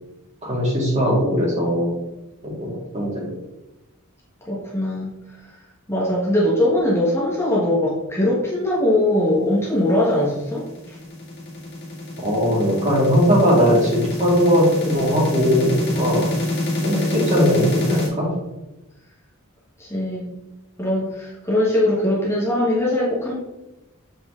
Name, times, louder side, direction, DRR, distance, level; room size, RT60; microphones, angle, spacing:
voice 1, 0.4-2.0 2.6-3.3 12.2-16.3 16.8-18.3, equal, 30° right, -4 dB, 2.4 m, -19 dB
voice 2, 4.5-5.1 5.9-11.0 19.8-20.2 20.8-23.4, left 1 dB, 10° left, -6 dB, 1.3 m, -21 dB
sound 1, 10.0-18.1, left 2 dB, 55° left, 2.0 m, -26 dB
7.4 x 4.4 x 3.8 m, 0.98 s
head